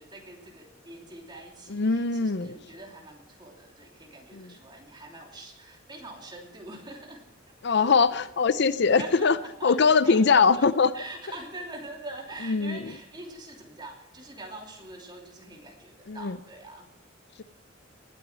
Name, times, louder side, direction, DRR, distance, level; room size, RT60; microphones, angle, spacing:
voice 1, 0.0-7.2 8.9-9.8 10.0-10.7 10.9-16.9, right 2 dB, 25° right, 0 dB, 3.0 m, -44 dB
voice 2, 1.7-2.6 4.3-4.5 7.6-9.4 9.6-10.9 12.4-12.9 16.1-16.4, left 5 dB, 60° left, 15 dB, 0.6 m, -22 dB
19.5 x 9.5 x 6.2 m, 0.89 s
head